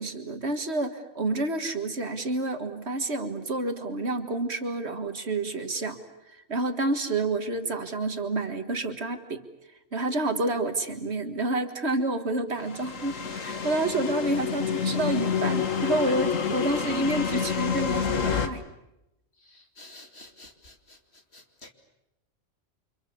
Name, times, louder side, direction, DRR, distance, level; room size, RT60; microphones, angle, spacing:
voice 1, 0.0-6.0 6.3-9.4 9.9-18.6, right 2 dB, 55° right, 7 dB, 2.0 m, -29 dB
sound 1, 12.6-18.5, left 6 dB, 85° left, 1.9 m, -28 dB
voice 2, 19.5-21.0 21.3-21.7, left 2 dB, 55° left, 4 dB, 2.8 m, -50 dB
29.0 x 26.0 x 7.2 m, 0.90 s
omnidirectional pair, 1.3 m